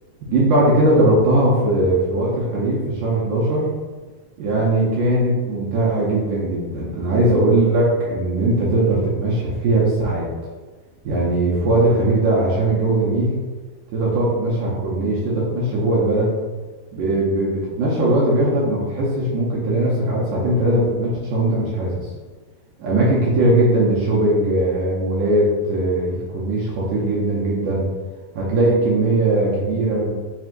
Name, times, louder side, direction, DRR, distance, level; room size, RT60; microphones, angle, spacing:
voice 1, 0.3-3.7 4.4-10.3 11.1-13.3 13.9-16.3 16.9-22.0 22.8-27.9 28.4-30.1, right 1 dB, 75° right, -5 dB, 1.9 m, -19 dB
5.8 x 2.7 x 2.5 m, 1.3 s
omnidirectional pair, 4.3 m